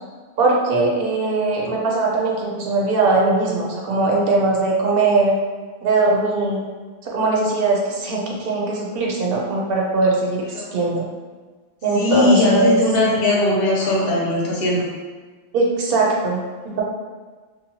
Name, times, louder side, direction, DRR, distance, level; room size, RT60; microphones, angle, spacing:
voice 1, 0.4-5.3 5.8-6.6 7.0-11.0 11.8-12.8 13.9-14.1 15.5-16.8, right 3 dB, 65° right, -2 dB, 0.7 m, -20 dB
voice 2, 11.9-14.9, left 2 dB, 70° left, -4 dB, 0.8 m, -19 dB
2.8 x 2.1 x 2.8 m, 1.4 s
omnidirectional pair, 1.1 m